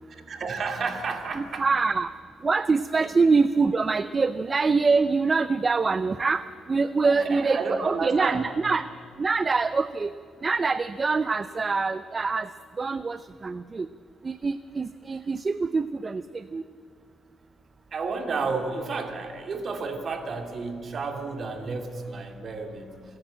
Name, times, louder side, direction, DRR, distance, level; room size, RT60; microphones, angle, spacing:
voice 1, 0.1-1.7 3.0-3.1 7.0-8.5 17.9-22.9, right 4 dB, 50° right, 5 dB, 2.5 m, -31 dB
voice 2, 1.4-2.1 2.4-6.4 6.7-8.9 9.2-10.1 10.4-12.5 12.8-13.9 14.2-16.6, right 4 dB, 30° right, 13 dB, 0.5 m, -24 dB
27.5 x 10.5 x 8.7 m, 2.2 s
cardioid pair, 90°, 0 cm